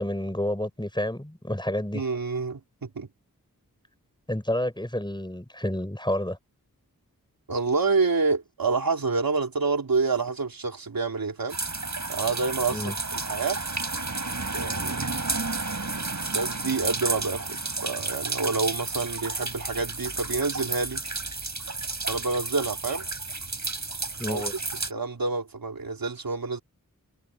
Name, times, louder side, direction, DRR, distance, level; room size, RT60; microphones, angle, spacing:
voice 1, 0.0-2.0 4.3-6.4 12.7-12.9 24.2-24.5, left 1 dB, 15° left, 4.8 m, -29 dB
voice 2, 1.9-3.1 7.5-11.6 12.1-13.6 14.5-15.0 16.1-21.0 22.1-23.1 24.2-24.5 24.9-26.6, right 4 dB, 85° right, 3.8 m, -28 dB
sound 1, 11.5-24.9, right 3 dB, 55° right, 5.5 m, -32 dB
cardioid pair, 40°, 34 cm